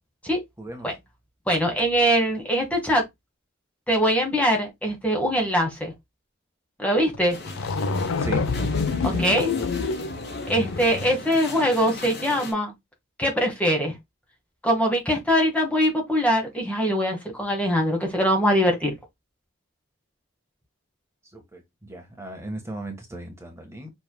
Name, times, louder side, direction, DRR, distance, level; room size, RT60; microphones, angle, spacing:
voice 1, 0.6-0.9 8.2-8.4 9.0-9.7 21.3-23.9, right 2 dB, 15° right, 1.3 m, -36 dB
voice 2, 1.5-3.0 3.9-5.9 6.8-7.4 9.0-9.5 10.5-12.7 13.2-13.9 14.6-18.9, equal, 5° left, 1.2 m, -22 dB
sound 1, 7.1-7.2 7.5-11.2, left 4 dB, 90° left, 0.6 m, -27 dB
sound 2, 7.3-12.5, left 2 dB, 55° left, 2.5 m, -38 dB
6.9 x 3.4 x 2.2 m
head